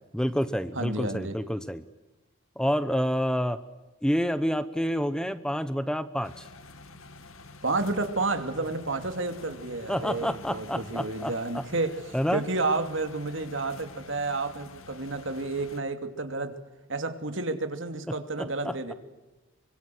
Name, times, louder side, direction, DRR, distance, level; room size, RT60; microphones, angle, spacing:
voice 1, 0.1-1.8 2.6-3.6 4.0-6.5 9.9-11.6 12.1-12.4 18.4-18.9, equal, 5° left, 12 dB, 0.9 m, -28 dB
voice 2, 0.7-1.4 7.6-11.9 12.3-16.6 16.9-18.9, right 3 dB, 65° right, 8 dB, 2.8 m, -30 dB
sound 1, 6.2-15.8, left 3 dB, 85° left, 2.2 m, -48 dB
25.5 x 25.0 x 7.9 m, 1.1 s
head